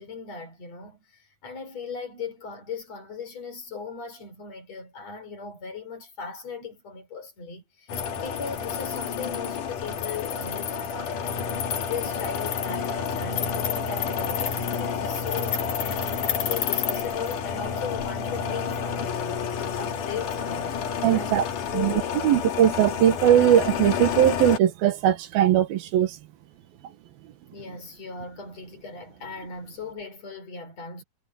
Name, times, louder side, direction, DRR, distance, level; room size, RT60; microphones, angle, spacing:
voice 1, 0.0-11.5 11.9-19.4 19.8-20.8 21.1-22.4 27.5-31.0, left 5 dB, 45° left, 5.6 m, -38 dB
sound 1, 7.9-24.6, left 7 dB, 65° left, 3.4 m, -29 dB
voice 2, 21.0-21.4 21.7-21.9 22.2-26.1, right 11 dB, 85° right, 3.3 m, -20 dB
omnidirectional pair, 4.1 m